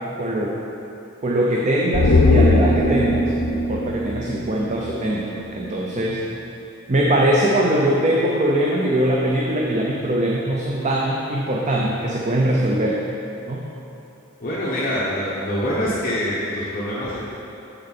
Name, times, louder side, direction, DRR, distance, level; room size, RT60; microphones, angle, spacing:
voice 1, 0.2-0.6 1.2-6.2 6.9-13.0 13.5-13.6, right 1 dB, 35° right, -2 dB, 0.6 m, -21 dB
sound 1, 1.9-5.3 5.6-5.7, left 2 dB, 65° left, 0.7 m, -19 dB
voice 2, 14.4-17.3, equal, 45° left, -8 dB, 1.0 m, -25 dB
7.0 x 6.6 x 4.1 m, 2.9 s
head